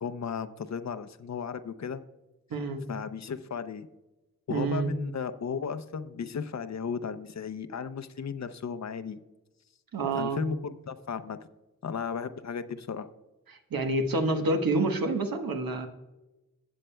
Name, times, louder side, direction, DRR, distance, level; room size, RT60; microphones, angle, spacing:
voice 1, 0.0-2.0 2.9-3.9 4.5-9.2 10.1-11.4 11.8-13.1, left 6 dB, 50° left, 12 dB, 0.6 m, -35 dB
voice 2, 2.5-2.8 4.5-4.9 9.9-10.4 13.5-15.9, right 2 dB, 80° right, 5 dB, 1.2 m, -28 dB
15.5 x 7.3 x 2.2 m, 1.0 s
cardioid pair, 75°, 35 cm